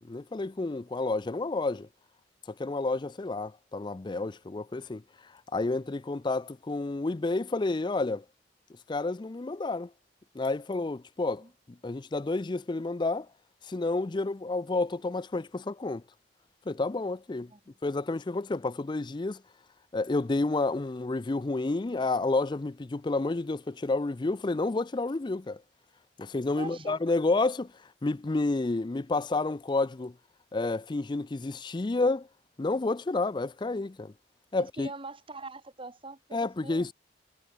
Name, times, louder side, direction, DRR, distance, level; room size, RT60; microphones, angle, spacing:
voice 1, 0.1-1.9 2.6-5.0 5.5-8.2 8.9-9.9 10.3-11.4 11.7-13.3 13.6-16.0 16.7-17.5 17.8-19.4 19.9-25.6 26.2-27.7 28.0-30.1 30.5-32.3 32.6-34.1 34.5-34.9 36.3-36.9, left 3 dB, 25° left, 0.4 m, -30 dB
voice 2, 26.6-27.0 34.6-36.9, right 3 dB, 30° right, 2.0 m, -43 dB
head